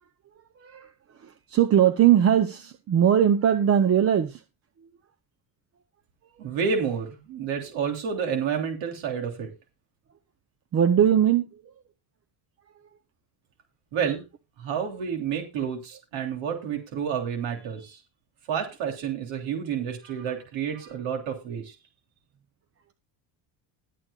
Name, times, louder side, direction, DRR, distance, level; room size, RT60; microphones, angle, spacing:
voice 1, 0.6-0.9 1.2-4.4 10.7-11.6, right 9 dB, 30° right, 0.8 m, -20 dB
voice 2, 6.4-9.5 13.9-14.3 14.6-18.0 18.5-21.7, right 7 dB, 80° right, 3.4 m, -30 dB
20.5 x 8.2 x 2.4 m
cardioid pair, 160°, 46 cm